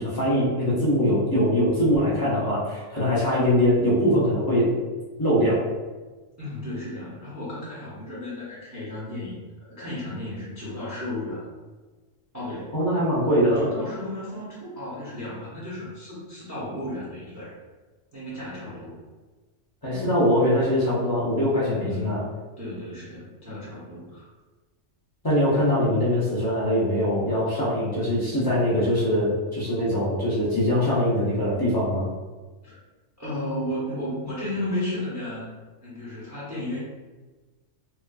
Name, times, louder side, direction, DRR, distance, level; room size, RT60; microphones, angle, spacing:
voice 1, 0.0-4.7 5.2-5.7 12.7-13.7 19.8-22.2 25.2-32.1, equal, 35° left, -9 dB, 0.3 m, -22 dB
voice 2, 6.4-9.4 9.8-11.5 12.3-12.8 13.6-17.6 18.1-19.0 19.8-20.2 21.7-24.3 32.6-32.8 33.2-35.5 35.8-36.8, left 1 dB, 20° right, -9 dB, 0.5 m, -34 dB
3.0 x 2.3 x 2.3 m, 1.3 s
omnidirectional pair, 1.4 m